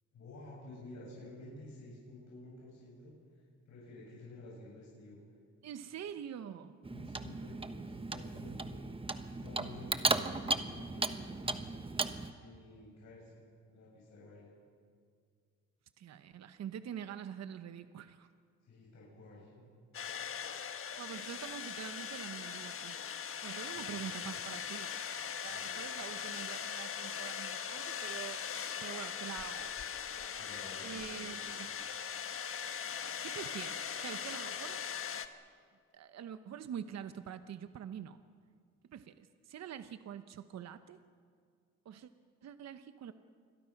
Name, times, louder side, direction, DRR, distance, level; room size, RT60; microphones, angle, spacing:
voice 1, 0.1-5.2 6.9-8.8 9.3-11.6 12.4-13.4 13.7-14.5 18.6-19.8 23.7-24.1 25.5-25.8 30.4-31.3, left 1 dB, 65° left, -5 dB, 7.2 m, -52 dB
voice 2, 5.6-6.8 10.1-10.3 16.0-18.3 21.0-23.0 23.4-25.0 25.4-28.4 28.8-29.7 30.8-31.7 33.2-34.8 35.9-38.2 38.9-41.0 41.8-42.1 42.4-43.1, right 9 dB, 60° right, 10 dB, 1.0 m, -45 dB
Clock, 6.8-12.3, right 3 dB, 20° right, 1.2 m, -36 dB
sound 1, 19.9-35.3, left 7 dB, 45° left, 1.3 m, -40 dB
29.0 x 23.0 x 5.9 m, 2.1 s
cardioid pair, 90°, 30 cm